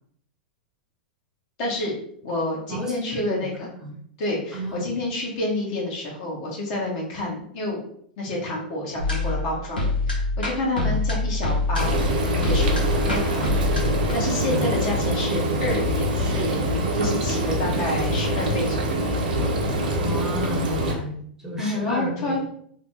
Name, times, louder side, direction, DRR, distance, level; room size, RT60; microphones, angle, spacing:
voice 1, 1.6-1.9 2.2-3.7 4.2-7.8 8.2-12.0 12.4-13.7 14.1-19.0 21.6-22.4, left 1 dB, 50° left, -3 dB, 1.3 m, -29 dB
voice 2, 2.7-3.5 3.8-4.0 4.5-4.9 10.8-11.0 14.5-14.7 20.0-22.4, equal, 10° right, -2 dB, 0.8 m, -32 dB
sound 1, 9.0-14.1, left 2 dB, 90° left, 0.8 m, -25 dB
Frying (food), 11.8-20.9, right 1 dB, 75° right, 0.7 m, -24 dB
3.2 x 2.1 x 2.8 m, 0.63 s
hypercardioid pair, 100°, 5 cm